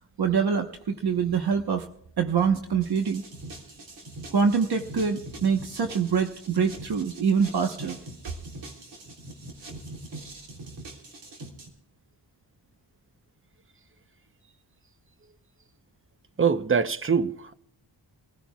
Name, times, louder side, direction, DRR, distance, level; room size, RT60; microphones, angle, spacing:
voice 1, 0.2-1.9 2.2-3.2 4.3-8.0, right 6 dB, 65° right, 1.2 m, -25 dB
sound 1, 2.8-11.7, right 2 dB, 90° right, 3.5 m, -43 dB
voice 2, 16.4-17.5, right 6 dB, 30° right, 0.8 m, -24 dB
26.0 x 15.5 x 2.3 m
wide cardioid pair, 110°, 42 cm